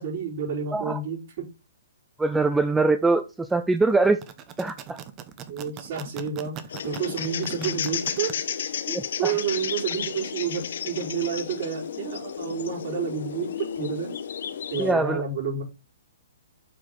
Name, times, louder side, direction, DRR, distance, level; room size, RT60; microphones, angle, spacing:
voice 1, 0.0-1.5 5.5-8.3 9.2-14.2 14.7-15.6, right 6 dB, 50° right, 4.8 m, -30 dB
voice 2, 2.2-4.2 4.6-5.0 8.9-9.3 14.8-15.2, right 3 dB, 5° right, 0.4 m, -23 dB
sound 1, 4.0-8.3, right 9 dB, 25° right, 0.9 m, -40 dB
sound 2, 6.7-14.9, left 8 dB, 65° left, 1.2 m, -32 dB
7.8 x 4.8 x 3.9 m
hypercardioid pair, 150°, 0 cm